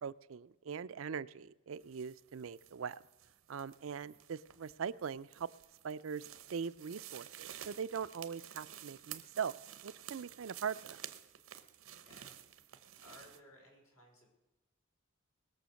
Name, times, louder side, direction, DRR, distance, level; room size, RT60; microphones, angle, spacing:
voice 1, 0.0-3.0 3.5-5.5 5.8-6.2 6.5-9.6 9.8-11.0, right 6 dB, 65° right, 17 dB, 0.4 m, -41 dB
sound 1, 1.8-13.4, right 11 dB, 85° right, 0.8 m, -52 dB
voice 2, 3.8-4.2 11.9-12.3 13.0-14.3, left 1 dB, 75° left, -1 dB, 5.2 m, -60 dB
20.5 x 7.0 x 6.4 m, 1.0 s
head